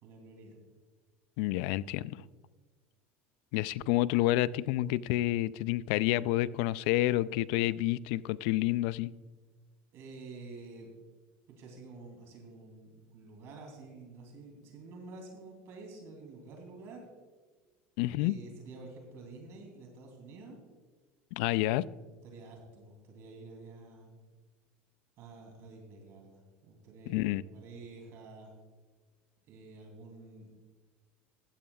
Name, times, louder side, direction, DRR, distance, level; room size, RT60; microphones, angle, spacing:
voice 1, 0.0-0.5 9.9-10.9 11.6-17.0 18.2-20.6 21.7-24.2 25.2-28.5 29.5-30.5, right 3 dB, 55° right, 3.0 m, -49 dB
voice 2, 1.4-2.2 3.5-9.1 18.0-18.4 21.3-21.9 27.1-27.4, left 16 dB, 70° left, 0.3 m, -29 dB
15.5 x 12.5 x 2.4 m
supercardioid pair, 120°, 6 cm